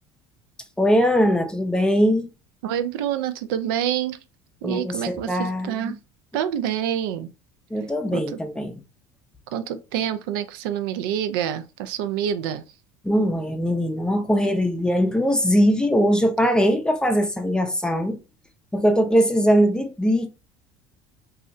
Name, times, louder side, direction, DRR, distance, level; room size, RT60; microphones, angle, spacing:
voice 1, 0.8-2.3 4.6-5.9 7.7-8.7 13.0-18.2 18.7-20.3, equal, 5° left, 0.5 m, -21 dB
voice 2, 2.6-4.2 4.6-6.0 6.3-7.3 8.1-8.4 9.5-12.6, right 10 dB, 85° right, 0.4 m, -27 dB
2.7 x 2.1 x 3.6 m
supercardioid pair, 100°, 11 cm